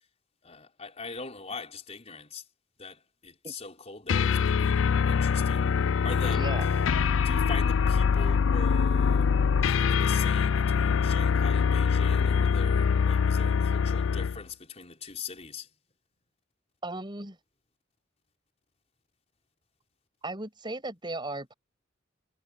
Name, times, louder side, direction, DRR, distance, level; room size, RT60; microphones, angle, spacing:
voice 1, 0.4-2.4 2.8-5.7 6.0-6.4 7.2-9.3 9.6-15.7, left 4 dB, 35° left, 4.6 m, -41 dB
sound 1, 4.1-14.4, left 6 dB, 75° left, 0.4 m, -24 dB
voice 2, 6.3-6.6 16.8-17.4 20.2-21.5, right 2 dB, 25° right, 6.5 m, -36 dB
head